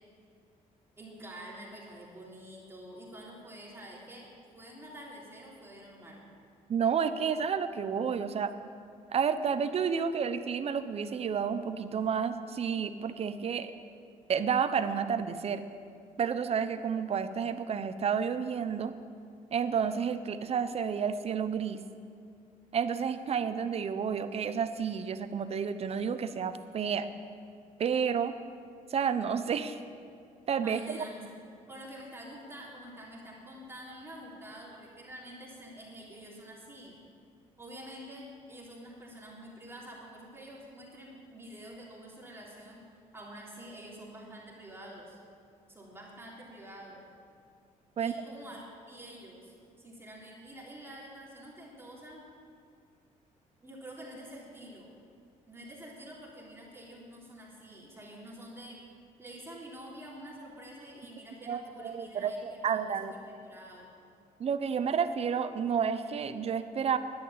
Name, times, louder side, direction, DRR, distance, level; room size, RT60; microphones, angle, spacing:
voice 1, 1.0-6.3 30.6-37.0 37.6-42.8 43.1-45.2 45.7-47.0 47.9-52.2 53.6-54.9 55.5-58.8 59.2-63.2 63.4-63.9, right 1 dB, 15° right, -4 dB, 3.4 m, -47 dB
voice 2, 6.7-8.5 9.1-13.7 14.3-15.6 16.2-18.9 19.5-21.8 22.7-27.1 27.8-28.3 28.9-29.8 30.5-30.8 48.0-48.1 61.5-63.1 64.4-67.0, right 7 dB, 45° right, 11 dB, 0.8 m, -30 dB
11.5 x 10.5 x 8.7 m, 2.3 s
cardioid pair, 115°, 15 cm